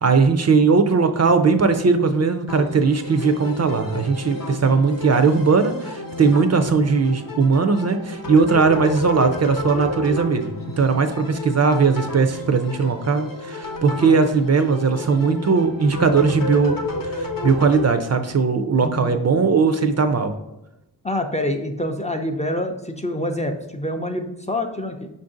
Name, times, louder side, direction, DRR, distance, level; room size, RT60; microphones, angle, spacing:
voice 1, 0.0-20.3, right 4 dB, 45° right, 8 dB, 0.4 m, -19 dB
sound 1, 2.5-17.8, left 1 dB, 55° left, 0.7 m, -31 dB
voice 2, 18.8-19.1 21.0-25.1, left 1 dB, 20° left, 4 dB, 0.4 m, -26 dB
5.3 x 2.6 x 3.7 m, 0.90 s
wide cardioid pair, 65°, 39 cm